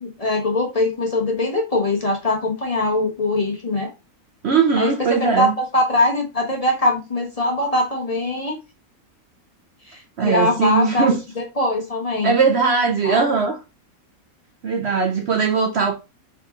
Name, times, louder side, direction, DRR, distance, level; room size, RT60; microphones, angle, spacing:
voice 1, 0.0-3.9 4.8-8.6 9.8-11.1 11.3-12.3 13.0-13.2, left 2 dB, 30° left, 1.1 m, -22 dB
voice 2, 4.4-5.5 10.2-11.2 12.2-13.6 14.6-15.9, right 5 dB, 60° right, 0.8 m, -19 dB
3.6 x 3.4 x 3.7 m
omnidirectional pair, 1.5 m